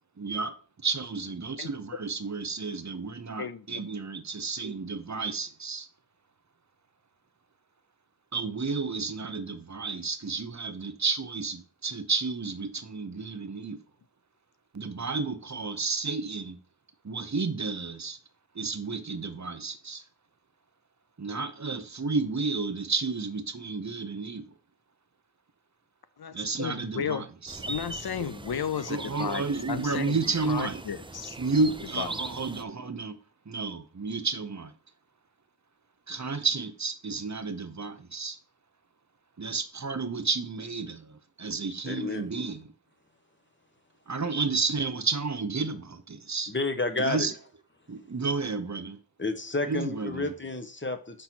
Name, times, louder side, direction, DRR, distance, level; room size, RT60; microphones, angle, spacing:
voice 1, 0.2-0.6 0.8-5.9 8.3-13.8 14.7-16.6 17.0-18.2 18.5-20.0 21.2-24.5 26.3-27.6 28.2-28.3 28.9-30.8 31.4-33.2 33.5-34.7 36.1-38.4 39.4-42.7 44.1-46.5 47.0-47.3 47.9-49.0 49.7-50.3, right 4 dB, 50° right, 0.8 m, -31 dB
voice 2, 3.4-3.8 26.2-27.2 27.7-30.2 30.4-31.4 32.0-32.1, left 8 dB, 80° left, 0.6 m, -34 dB
sound 1, 27.5-32.6, right 2 dB, 15° right, 0.4 m, -41 dB
voice 3, 41.8-42.2 46.5-47.3 49.2-51.2, left 3 dB, 30° left, 1.0 m, -30 dB
5.3 x 4.3 x 6.0 m
wide cardioid pair, 65°, 37 cm